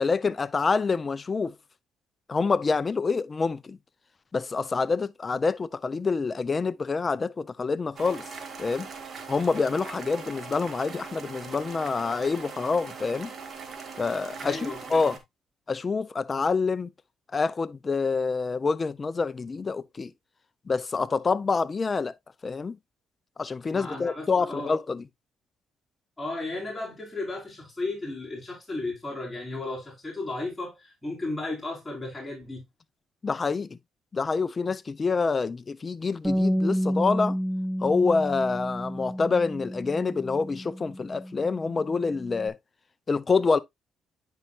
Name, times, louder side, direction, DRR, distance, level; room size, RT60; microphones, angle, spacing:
voice 1, 0.0-1.6 2.3-3.8 4.3-8.2 8.6-8.9 9.3-13.3 14.0-15.2 15.7-16.9 17.3-20.1 20.7-22.1 22.4-22.8 23.4-25.0 33.2-33.8 34.1-37.4 37.8-42.6 43.1-43.6, left 4 dB, 35° left, 0.5 m, -27 dB
sound 1, 8.0-15.2, right 5 dB, 45° right, 1.8 m, -41 dB
voice 2, 14.4-15.1 23.7-24.7 26.2-32.6, left 2 dB, 10° left, 4.4 m, -34 dB
Bass guitar, 36.2-42.5, equal, 10° right, 1.8 m, -30 dB
9.2 x 5.6 x 2.4 m
cardioid pair, 90°, 0 cm